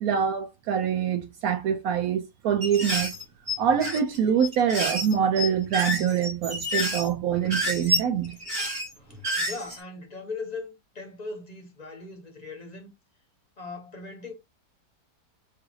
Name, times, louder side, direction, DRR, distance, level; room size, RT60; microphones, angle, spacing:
voice 1, 0.0-3.1 3.6-8.4, right 8 dB, 70° right, 0.9 m, -25 dB
sound 1, 2.6-9.8, equal, 45° right, 2.1 m, -29 dB
voice 2, 9.0-12.9 13.6-14.3, left 3 dB, 30° left, 0.8 m, -39 dB
4.5 x 2.4 x 3.0 m
omnidirectional pair, 1.8 m